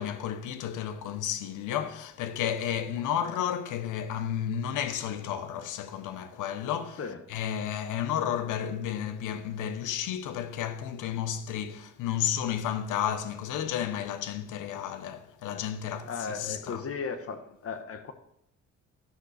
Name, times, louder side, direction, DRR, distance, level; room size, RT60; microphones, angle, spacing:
voice 1, 0.0-7.0 7.3-16.8, left 9 dB, 85° left, 0.8 m, -32 dB
voice 2, 16.0-18.1, left 5 dB, 50° left, 1.1 m, -36 dB
11.0 x 6.4 x 4.1 m
cardioid pair, 90°, 30 cm